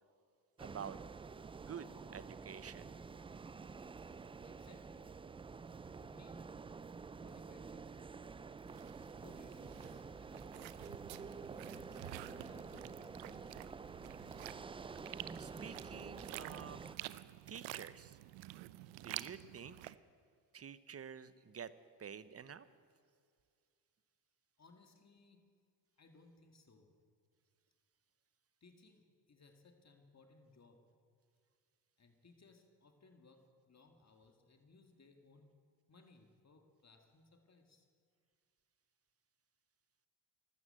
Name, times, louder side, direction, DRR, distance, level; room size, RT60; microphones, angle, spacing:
sound 1, 0.6-17.0, right 4 dB, 15° right, 0.3 m, -49 dB
voice 1, 0.6-1.0 1.5-2.9 15.4-17.0 17.5-18.2 19.0-20.0 20.5-21.7 22.0-22.7, right 7 dB, 30° right, 16 dB, 0.8 m, -49 dB
voice 2, 4.4-5.2 6.0-6.5 7.2-8.2 9.1-11.1 11.7-12.1 12.4-13.1 24.6-25.5 26.0-27.0 28.6-31.0 32.0-35.5 35.9-37.9, left 3 dB, 35° left, 6 dB, 2.2 m, -64 dB
sound 2, 8.7-20.0, right 17 dB, 80° right, 0.6 m, -50 dB
13.5 x 12.5 x 7.9 m, 2.2 s
supercardioid pair, 60°, 45 cm